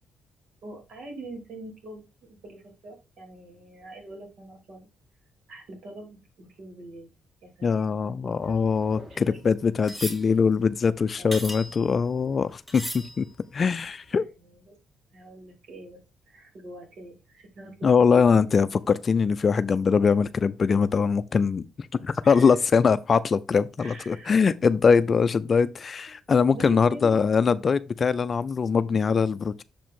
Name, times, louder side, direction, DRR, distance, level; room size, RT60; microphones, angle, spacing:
voice 1, 0.6-4.9 5.5-7.1 7.4-8.6 9.1-9.6 11.2-11.5 14.1-14.7 15.1-16.0 16.3-18.7 22.2-22.5 23.8-24.5 26.5-27.2, right 1 dB, 65° right, 2.9 m, -44 dB
voice 2, 7.6-13.3 13.5-14.2 17.8-29.6, left 5 dB, 40° left, 0.4 m, -22 dB
sound 1, 8.4-12.3 12.7-13.6 14.1-14.2, left 1 dB, 5° right, 2.1 m, -39 dB
6.8 x 5.1 x 3.7 m
cardioid pair, 90°, 0 cm